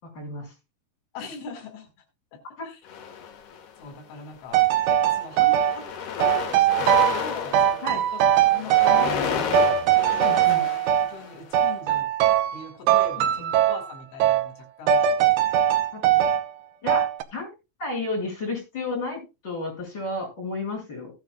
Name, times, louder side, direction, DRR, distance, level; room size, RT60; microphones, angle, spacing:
voice 1, 0.0-0.5 2.6-2.7 7.8-8.0 9.0-9.1 10.2-10.6 13.4-13.5 15.9-16.3 16.8-17.5 17.8-21.1, left 2 dB, 25° left, -1 dB, 7.0 m, -32 dB
voice 2, 1.1-1.9 2.3-2.4 2.6-2.8 3.8-8.2 8.5-9.7 10.5-10.7 11.1-12.1 12.5-15.4, left 5 dB, 80° left, 3 dB, 4.8 m, -41 dB
sound 1, 2.9-3.9 4.6-4.8 5.1-11.6, left 7 dB, 65° left, 3.4 m, -32 dB
sound 2, 4.5-5.8 6.2-7.3 7.5-9.3 9.5-11.1 11.5-12.6 12.9-13.9 14.2-14.5 14.9-16.5 16.9-17.2, right 10 dB, 80° right, 2.9 m, -20 dB
16.5 x 9.4 x 2.4 m, 0.27 s
omnidirectional pair, 5.4 m